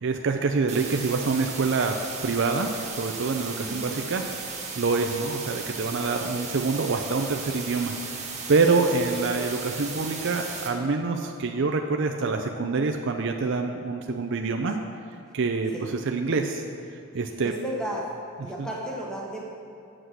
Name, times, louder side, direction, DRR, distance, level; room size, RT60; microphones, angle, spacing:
voice 1, 0.0-1.9 2.2-2.7 3.0-4.2 4.8-8.0 8.5-14.8 15.3-15.7 16.1-16.6 17.1-17.5 18.6-18.7, right 4 dB, 55° right, 4 dB, 0.5 m, -26 dB
sound 1, 0.7-10.7, right 5 dB, 30° right, 1.3 m, -36 dB
voice 2, 3.6-4.0 15.7-15.9 17.2-18.1 18.4-19.4, right 1 dB, 5° left, -3 dB, 1.1 m, -34 dB
8.0 x 7.6 x 6.4 m, 2.7 s
head